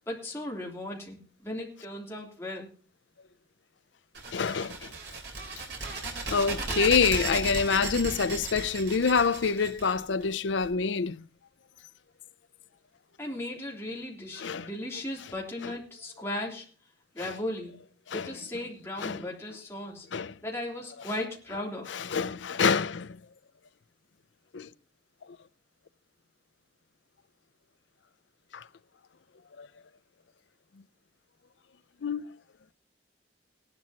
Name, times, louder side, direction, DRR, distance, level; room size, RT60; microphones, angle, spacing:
voice 1, 0.1-2.7 13.2-16.7 17.1-17.8 18.1-20.1 20.4-21.9, left 1 dB, 15° left, 3.1 m, -36 dB
sound 1, 4.1-10.7, right 3 dB, 65° right, 3.5 m, -35 dB
voice 2, 4.3-4.9 6.3-11.2 14.4-14.7 15.6-15.7 17.2-17.3 18.1-18.3 19.0-19.2 20.1-20.3 21.9-23.2 24.5-24.7 28.5-28.6 29.6-29.7 32.0-32.3, left 5 dB, 80° left, 0.5 m, -27 dB
18.0 x 11.5 x 2.9 m
head